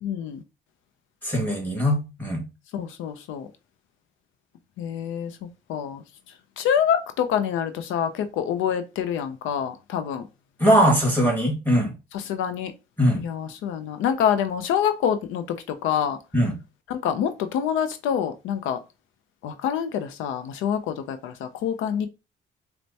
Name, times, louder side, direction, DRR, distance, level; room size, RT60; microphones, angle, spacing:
voice 1, 0.0-0.4 2.7-3.5 4.8-6.0 6.6-10.3 12.1-12.7 13.2-15.6 15.8-16.2 16.9-18.8 19.4-22.1, left 8 dB, 85° left, 0.4 m, -26 dB
voice 2, 1.2-2.4 10.6-11.9 13.0-13.2 16.3-16.5, equal, 10° left, 1.6 m, -21 dB
4.4 x 2.1 x 2.7 m
cardioid pair, 90°, 20 cm